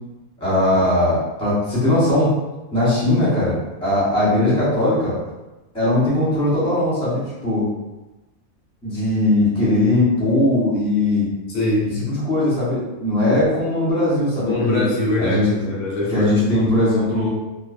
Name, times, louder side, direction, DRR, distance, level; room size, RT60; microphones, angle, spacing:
voice 1, 0.4-2.3 2.7-5.1 5.7-7.6 8.8-11.3 12.1-14.8 15.2-15.7 16.1-17.3, left 1 dB, 5° left, -10 dB, 0.8 m, -19 dB
voice 2, 11.5-11.9 14.5-16.7, left 2 dB, 65° left, -4 dB, 0.8 m, -23 dB
2.6 x 2.0 x 2.4 m, 1.0 s
omnidirectional pair, 1.6 m